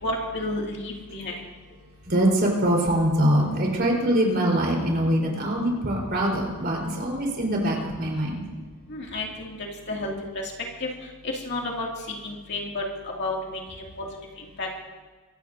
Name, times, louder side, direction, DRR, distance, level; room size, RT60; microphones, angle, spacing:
voice 1, 0.0-1.3 8.9-9.5 9.9-10.1 10.8-10.9 11.4-11.9 12.2-12.8 13.2-13.6 14.0-14.1 14.6-14.8, left 2 dB, 50° left, -1 dB, 2.4 m, -30 dB
voice 2, 2.1-8.4, right 1 dB, 45° right, -2 dB, 4.2 m, -23 dB
25.0 x 16.5 x 2.7 m, 1.4 s
head